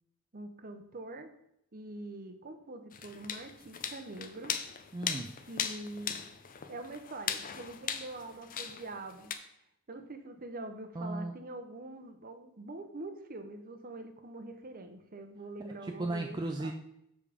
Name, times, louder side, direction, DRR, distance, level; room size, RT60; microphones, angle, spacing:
voice 1, 0.3-1.3 1.7-4.5 5.5-6.1 6.7-9.3 9.9-16.7, right 2 dB, 40° right, 7 dB, 0.8 m, -44 dB
sound 1, 2.9-9.3, left 7 dB, 40° left, 0.6 m, -39 dB
voice 2, 4.9-5.3 10.9-11.3 15.8-16.7, right 2 dB, 20° right, 3 dB, 0.4 m, -35 dB
6.9 x 5.0 x 5.0 m, 0.78 s
head